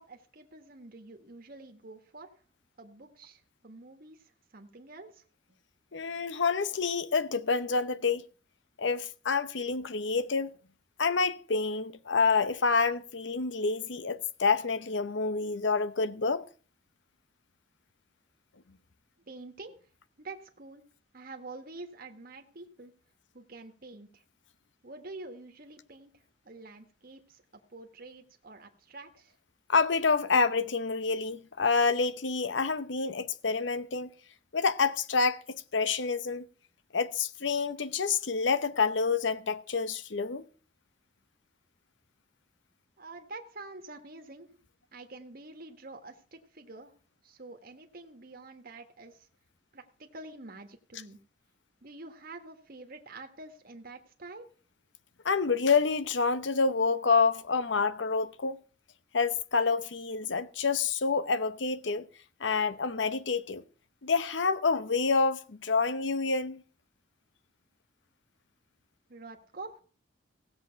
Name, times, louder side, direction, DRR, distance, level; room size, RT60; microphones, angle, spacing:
voice 1, 0.0-2.3 2.8-5.2 19.2-19.8 20.2-20.8 21.1-22.9 23.3-24.2 24.8-27.4 27.7-29.3 43.0-44.6 44.9-46.9 47.2-49.3 49.7-51.2 51.8-54.5 69.1-69.8, right 2 dB, 55° right, 1.5 m, -47 dB
voice 2, 5.9-8.3 8.8-10.5 11.0-16.4 29.7-34.1 34.5-36.5 36.9-40.5 55.2-58.6 59.1-62.1 62.4-63.6 64.0-66.6, left 4 dB, 80° left, 0.8 m, -28 dB
16.5 x 7.7 x 5.8 m
head